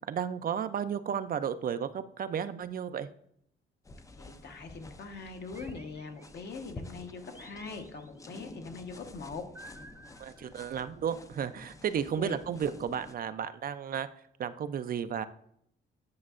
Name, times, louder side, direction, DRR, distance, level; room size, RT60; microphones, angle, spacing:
voice 1, 0.1-3.1 10.2-14.1 14.4-15.3, right 8 dB, 45° right, 12 dB, 0.4 m, -33 dB
sound 1, 3.8-13.2, left 2 dB, 15° left, 0.5 m, -50 dB
voice 2, 4.2-9.4 12.2-12.4, left 4 dB, 55° left, 5 dB, 1.1 m, -42 dB
sound 2, 5.5-6.7 7.3-8.5 9.5-11.0, right 1 dB, 10° right, 0.8 m, -54 dB
9.6 x 5.3 x 2.5 m, 0.69 s
cardioid pair, 90°, 20 cm